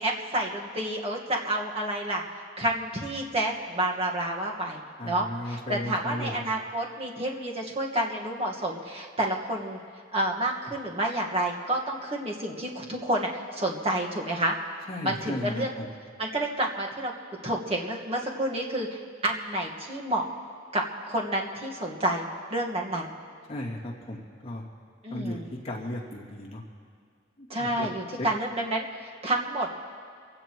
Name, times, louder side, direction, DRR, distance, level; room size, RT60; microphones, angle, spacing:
voice 1, 0.0-2.2 2.6-9.8 10.1-14.5 15.0-15.7 16.2-17.1 17.4-20.3 20.7-23.1 25.0-25.5 27.5-29.7, right 1 dB, 30° right, -1 dB, 1.6 m, -29 dB
voice 2, 5.0-6.4 14.9-15.8 23.5-24.6 25.1-25.4 25.6-26.6 27.4-27.9 28.2-28.3, left 1 dB, 35° left, -4 dB, 2.5 m, -35 dB
25.5 x 16.5 x 3.1 m, 2.2 s
head